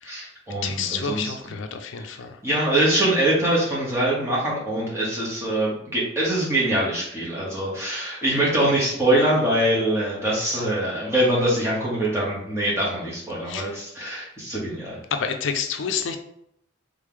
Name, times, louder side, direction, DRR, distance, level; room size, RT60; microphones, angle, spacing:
voice 1, 0.0-1.3 2.0-2.1 2.4-15.0, right 1 dB, 15° right, -6 dB, 1.3 m, -23 dB
voice 2, 0.6-2.4 13.5-13.8 15.1-16.2, left 6 dB, 75° left, 7 dB, 0.4 m, -29 dB
3.6 x 3.3 x 3.6 m, 0.74 s
head